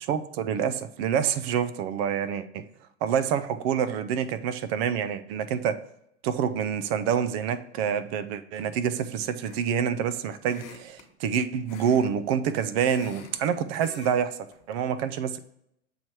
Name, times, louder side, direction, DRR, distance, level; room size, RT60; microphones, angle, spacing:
voice 1, 0.0-2.6 3.0-5.8 6.2-15.4, right 8 dB, 55° right, 0.6 m, -27 dB
sound 1, 9.4-9.8 10.4-11.1 11.7-12.1 12.4-13.4 13.8-14.2 14.5-14.7, left 6 dB, 50° left, 1.3 m, -46 dB
7.3 x 3.1 x 4.5 m
supercardioid pair, 125°, 36 cm